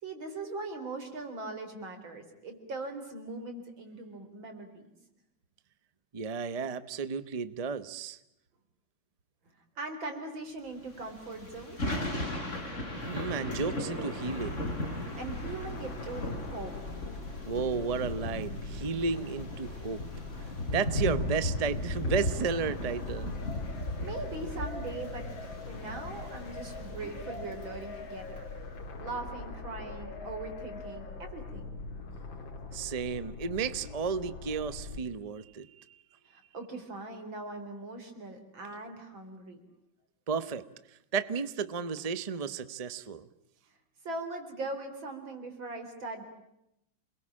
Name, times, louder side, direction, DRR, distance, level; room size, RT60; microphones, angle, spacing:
voice 1, 0.0-4.9 9.4-11.9 15.1-16.7 23.7-28.4 29.0-31.7 36.3-39.6 44.0-46.2, right 2 dB, 90° right, 6 dB, 4.7 m, -40 dB
voice 2, 6.1-8.2 13.0-14.6 17.4-20.0 20.7-23.3 32.7-36.0 40.3-40.7 41.1-43.3, right 5 dB, 30° right, 14 dB, 0.7 m, -33 dB
Thunder / Rain, 10.9-28.4, left 1 dB, 40° left, 4.7 m, -37 dB
sound 1, 15.3-35.0, left 3 dB, 80° left, 2.8 m, -43 dB
28.5 x 22.0 x 8.8 m, 0.83 s
omnidirectional pair, 2.1 m